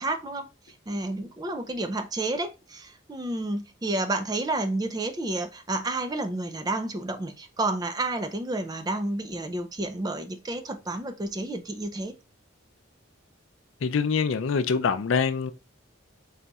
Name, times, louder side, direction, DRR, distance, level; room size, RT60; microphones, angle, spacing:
voice 1, 0.0-12.2, right 2 dB, 20° right, 0.4 m, -30 dB
voice 2, 13.8-15.5, left 5 dB, 75° left, 0.4 m, -24 dB
4.1 x 3.9 x 2.3 m
head